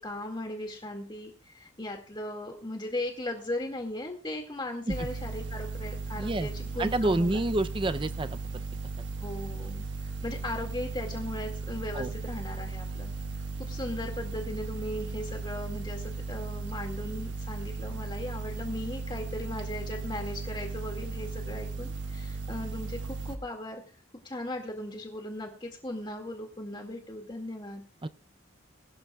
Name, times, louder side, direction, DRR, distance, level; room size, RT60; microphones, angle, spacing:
voice 1, 0.0-7.4 9.2-13.1 13.6-23.8 24.2-27.8, left 1 dB, 25° left, 3 dB, 2.1 m, -37 dB
sound 1, 4.9-23.4, right 3 dB, 65° right, 1.4 m, -36 dB
voice 2, 6.2-6.5 6.8-8.4 11.9-12.1 28.0-28.1, right 2 dB, 25° right, 11 dB, 0.6 m, -28 dB
21.0 x 13.0 x 2.4 m, 0.35 s
head